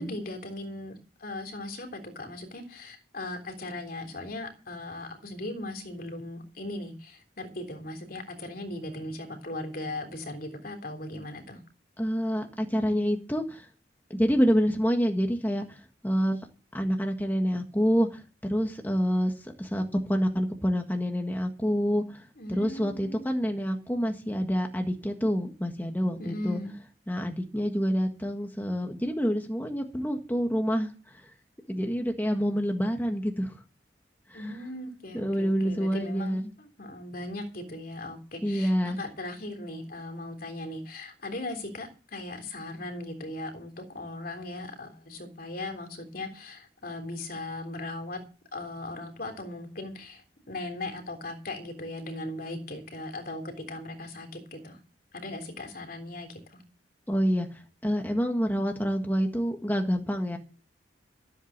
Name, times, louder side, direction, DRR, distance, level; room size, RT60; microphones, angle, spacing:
voice 1, 0.0-11.6 22.4-23.2 26.2-26.7 34.3-48.2 48.5-54.8 55.1-56.6, left 2 dB, 55° left, 6 dB, 3.4 m, -38 dB
voice 2, 12.0-13.7 14.1-16.5 16.7-26.6 27.1-31.3 31.7-33.6 34.3-34.6 35.1-36.5 38.4-39.0 57.1-60.4, equal, 10° left, 3 dB, 1.6 m, -27 dB
14.5 x 8.1 x 7.3 m, 0.35 s
head